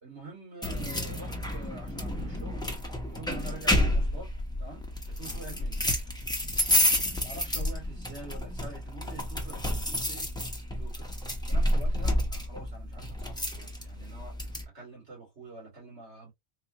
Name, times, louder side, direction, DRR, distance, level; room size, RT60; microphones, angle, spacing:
voice 1, 0.0-2.6 3.0-4.3 4.6-5.9 7.2-10.3 10.7-11.1 11.4-16.3, right 2 dB, 75° right, 2.5 m, -46 dB
sound 1, 0.6-14.6, left 1 dB, 5° left, 0.9 m, -30 dB
4.1 x 2.5 x 2.9 m
omnidirectional pair, 1.2 m